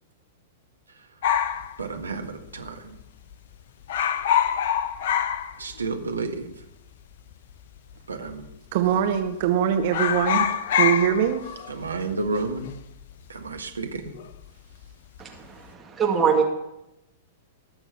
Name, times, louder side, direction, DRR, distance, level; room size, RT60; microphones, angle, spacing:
voice 1, 0.9-1.2 1.8-3.0 5.6-6.6 8.1-8.5 11.7-12.8 13.3-14.1, right 3 dB, 80° right, 5 dB, 1.6 m, -31 dB
sound 1, 1.2-2.7 3.0-3.1 3.3-3.6 3.8-6.1 6.4-6.5 7.3-7.9 8.3-8.5 8.8-9.5 9.8-14.4 14.7-15.2, left 8 dB, 55° left, 0.8 m, -26 dB
voice 2, 8.7-11.6, right 9 dB, 55° right, 6 dB, 1.1 m, -23 dB
voice 3, 15.2-16.4, right 6 dB, 15° right, 1 dB, 2.1 m, -23 dB
20.0 x 7.0 x 6.0 m, 0.88 s
figure-of-eight pair, 100°, 0 cm